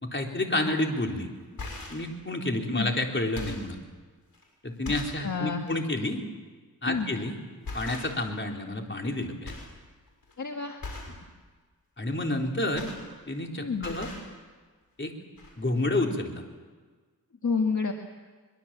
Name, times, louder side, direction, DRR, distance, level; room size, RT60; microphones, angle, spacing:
voice 1, 0.0-1.6 1.9-3.8 4.6-6.2 6.8-7.3 7.7-9.5 12.0-12.9 13.3-14.1 15.0-15.1 15.6-16.4, left 1 dB, 30° left, 2 dB, 3.8 m, -29 dB
sound 1, 0.7-0.8 1.4-2.1 2.7-2.9 3.2-3.7 4.3-4.4 4.8-5.2 5.6-5.8 7.0-7.2 7.6-8.4 8.7-9.2 9.4-9.8 10.1-10.3 10.8-11.2 12.4-13.5 13.7-14.3 15.0-15.1 15.4-15.5, left 3 dB, 70° left, 6.6 m, -40 dB
voice 2, 2.6-2.9 5.2-5.7 6.9-7.1 10.4-10.8 13.6-13.9 17.4-17.9, left 5 dB, 50° left, 4 dB, 1.7 m, -29 dB
23.5 x 22.5 x 7.5 m, 1.4 s
wide cardioid pair, 70°, 36 cm